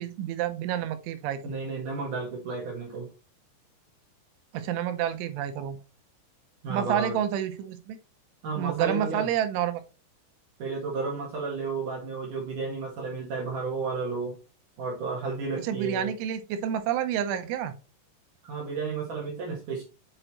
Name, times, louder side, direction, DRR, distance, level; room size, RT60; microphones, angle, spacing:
voice 1, 0.0-1.5 4.5-5.8 6.7-8.0 8.6-9.8 15.6-17.7, right 10 dB, 85° right, 3.2 m, -29 dB
voice 2, 1.4-3.1 6.6-7.2 8.4-9.3 10.6-14.4 14.8-16.1 18.4-19.8, right 4 dB, 60° right, 2.3 m, -32 dB
7.8 x 5.9 x 3.1 m
omnidirectional pair, 5.5 m